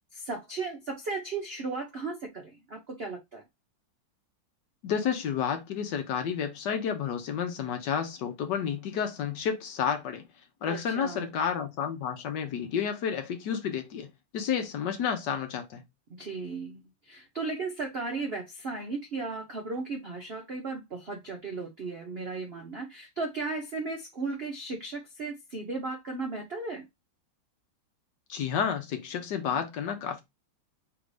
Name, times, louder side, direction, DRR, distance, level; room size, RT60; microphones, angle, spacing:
voice 1, 0.1-3.4 10.7-11.3 16.1-26.8 29.5-29.6, right 3 dB, 70° right, 0.5 m, -36 dB
voice 2, 4.8-10.2 10.6-14.1 14.3-15.8 28.3-30.2, left 7 dB, 65° left, 1.3 m, -30 dB
3.5 x 2.7 x 4.7 m
omnidirectional pair, 2.2 m